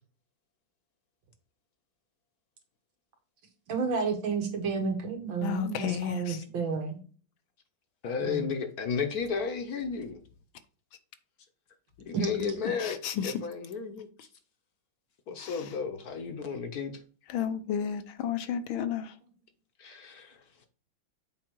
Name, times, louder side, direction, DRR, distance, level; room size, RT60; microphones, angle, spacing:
voice 1, 3.7-7.0 8.3-8.5 12.1-12.2, right 5 dB, 75° right, 2.2 m, -31 dB
voice 2, 5.4-6.4 12.8-13.4 15.4-15.7 17.3-19.1, left 9 dB, 85° left, 1.6 m, -32 dB
voice 3, 8.0-10.2 12.0-13.0 13.2-14.1 15.3-17.0 19.8-20.7, left 6 dB, 55° left, 1.2 m, -33 dB
7.5 x 4.7 x 4.6 m
omnidirectional pair, 2.1 m